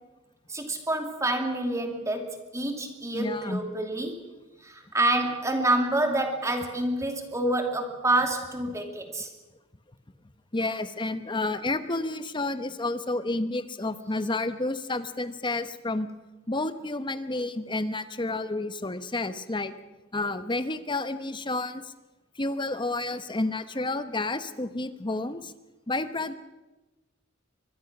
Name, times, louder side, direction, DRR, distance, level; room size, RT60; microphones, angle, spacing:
voice 1, 0.5-4.3 4.6-9.3, right 1 dB, 15° right, 4 dB, 2.6 m, -27 dB
voice 2, 3.1-3.6 10.5-16.1 16.5-19.7 20.1-21.8 22.4-25.5 25.9-26.3, left 2 dB, 25° left, 11 dB, 1.0 m, -30 dB
24.5 x 21.0 x 6.1 m, 1.1 s
head